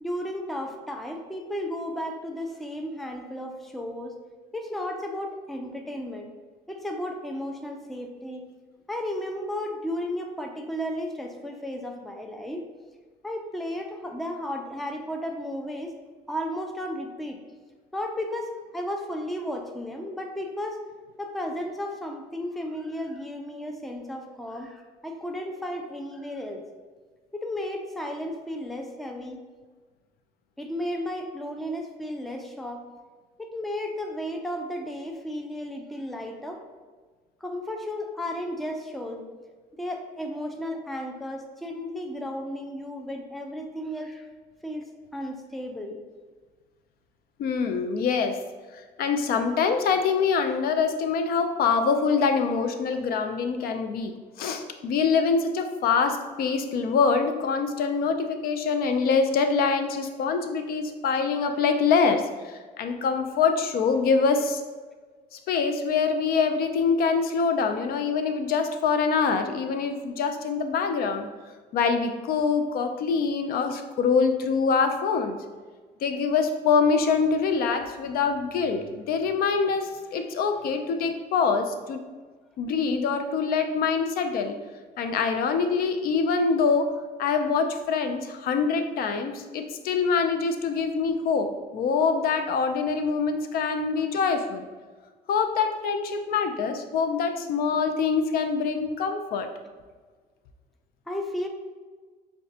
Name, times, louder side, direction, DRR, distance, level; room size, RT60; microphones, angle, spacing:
voice 1, 0.0-4.2 4.5-6.3 6.7-8.5 8.9-12.6 13.2-15.9 16.3-17.4 17.9-20.8 21.2-26.6 27.3-29.4 30.6-32.8 33.4-36.6 37.4-39.2 39.8-44.3 44.6-46.0 101.1-101.5, left 1 dB, ahead, 3 dB, 0.4 m, -34 dB
voice 2, 47.4-48.4 49.0-64.6 65.5-71.3 71.7-75.4 76.0-82.0 82.6-84.6 85.0-94.7 95.3-99.5, left 5 dB, 65° left, 7 dB, 0.4 m, -25 dB
5.7 x 2.2 x 2.7 m, 1.4 s
cardioid pair, 110°, 17 cm